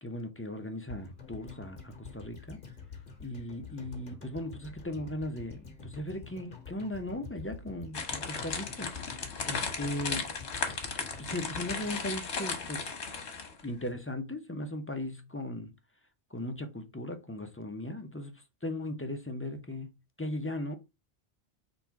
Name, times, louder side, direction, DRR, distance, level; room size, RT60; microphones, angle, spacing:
voice 1, 0.0-2.6 3.2-8.9 9.4-10.3 11.2-13.0 13.6-15.7 16.3-19.9 20.2-20.8, left 1 dB, 15° left, 0.5 m, -37 dB
sound 1, 0.9-13.1 13.4-13.5, left 5 dB, 50° left, 1.4 m, -48 dB
sound 2, 7.9-13.6, left 5 dB, 75° left, 1.3 m, -36 dB
3.9 x 2.9 x 4.6 m
omnidirectional pair, 1.2 m